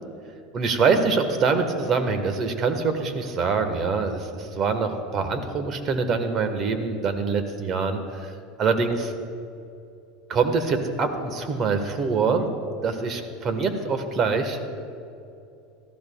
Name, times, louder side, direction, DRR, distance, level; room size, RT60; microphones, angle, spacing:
voice 1, 0.5-8.3 8.6-9.1 10.3-12.5 12.8-14.6, right 4 dB, 45° right, 8 dB, 1.3 m, -24 dB
17.5 x 14.5 x 2.3 m, 2.6 s
hypercardioid pair, 95°, 0 cm